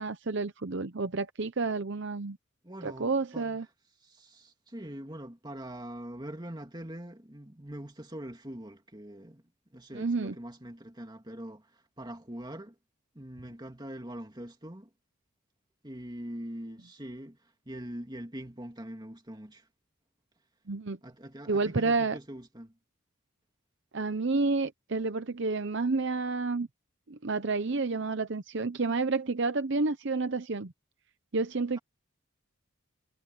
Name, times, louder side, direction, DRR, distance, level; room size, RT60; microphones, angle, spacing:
voice 1, 0.0-2.4 2.8-3.7 9.9-10.3 20.7-21.0 21.5-22.2 23.9-26.7 27.1-30.7 31.3-31.8, right 3 dB, 55° right, 0.7 m, -30 dB
voice 2, 2.6-3.6 4.0-9.4 9.7-12.7 13.1-14.9 15.8-19.7 21.0-22.7, right 1 dB, 20° right, 2.5 m, -43 dB
head